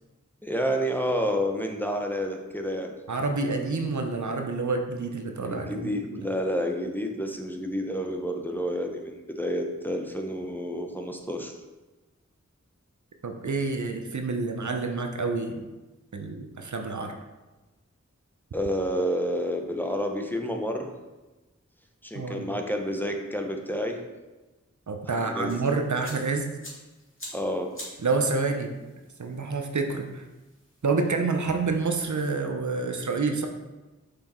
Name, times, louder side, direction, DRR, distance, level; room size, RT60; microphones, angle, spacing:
voice 1, 0.4-2.9 5.4-11.5 18.5-20.9 22.0-24.0 25.1-25.7 27.3-27.7, equal, 5° left, 2 dB, 0.8 m, -29 dB
voice 2, 3.1-5.9 13.2-15.6 16.1-17.1 22.1-22.5 24.9-26.5 28.0-28.7 29.2-30.2 30.8-33.5, right 4 dB, 75° right, 4 dB, 0.7 m, -28 dB
sound 1, 25.4-31.9, left 1 dB, 45° left, 2.2 m, -48 dB
6.0 x 4.9 x 4.3 m, 1.1 s
wide cardioid pair, 40°, 30 cm